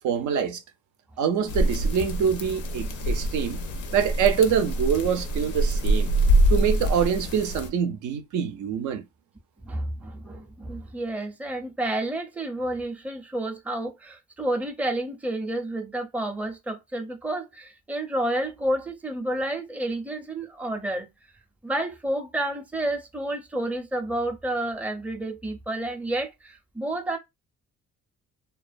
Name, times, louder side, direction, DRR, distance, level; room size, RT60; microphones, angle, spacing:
voice 1, 0.0-0.6 1.2-3.6 3.9-6.1 6.5-9.0, right 7 dB, 80° right, 0.5 m, -25 dB
sound 1, 1.5-7.7, right 1 dB, 85° left, 0.6 m, -25 dB
voice 2, 9.6-21.1 21.6-27.2, right 1 dB, 5° right, 0.5 m, -30 dB
2.3 x 2.2 x 2.5 m
cardioid pair, 90°, 30 cm